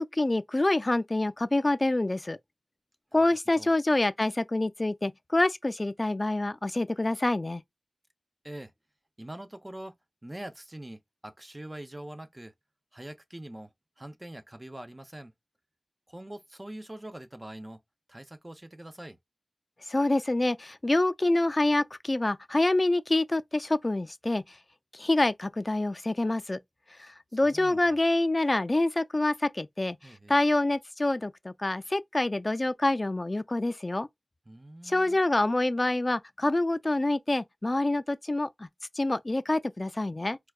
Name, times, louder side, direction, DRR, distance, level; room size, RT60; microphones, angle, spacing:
voice 1, 0.0-2.4 3.1-7.6 19.9-24.4 24.9-26.6 27.0-30.0 30.3-34.1 34.9-38.7 39.0-40.4, left 2 dB, 40° left, 0.3 m, -26 dB
voice 2, 9.2-10.0 10.2-12.5 12.9-13.7 14.0-15.3 16.1-17.8 18.1-19.2 27.4-28.0 30.0-30.4 34.5-35.2, right 1 dB, 30° right, 0.5 m, -43 dB
4.5 x 2.2 x 2.3 m
wide cardioid pair, 50°, 0 cm